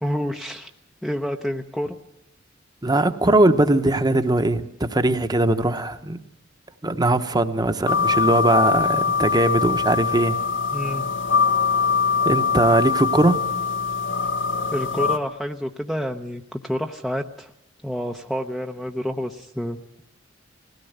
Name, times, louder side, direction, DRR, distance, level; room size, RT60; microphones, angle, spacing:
voice 1, 0.0-0.7 1.0-2.0 10.7-11.1 14.7-17.5 17.8-20.0, equal, ahead, 3 dB, 0.7 m, -28 dB
voice 2, 2.8-6.2 6.8-10.4 12.2-13.4, right 2 dB, 20° right, 9 dB, 1.0 m, -20 dB
sound 1, 7.9-15.2, left 5 dB, 75° left, 1.1 m, -22 dB
20.5 x 17.0 x 8.0 m, 0.85 s
head